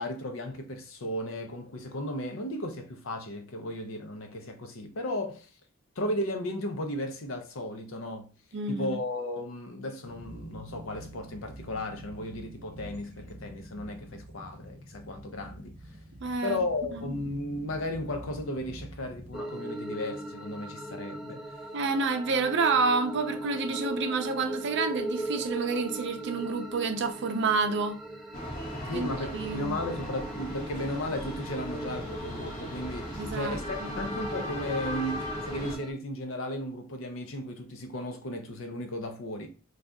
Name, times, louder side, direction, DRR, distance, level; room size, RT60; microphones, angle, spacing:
voice 1, 0.0-5.5 6.0-8.3 8.7-15.8 16.4-21.4 28.8-39.5, left 1 dB, 70° left, 0.6 m, -35 dB
voice 2, 8.5-9.0 16.2-16.6 16.9-17.2 21.7-28.0 28.9-29.8 33.1-33.9, right 4 dB, 60° right, 0.5 m, -29 dB
sound 1, 10.0-19.4, right 1 dB, 30° right, 0.9 m, -47 dB
sound 2, 19.3-35.9, right 1 dB, ahead, 0.4 m, -39 dB
sound 3, 28.3-35.7, equal, 40° left, 1.0 m, -38 dB
2.7 x 2.4 x 3.4 m
head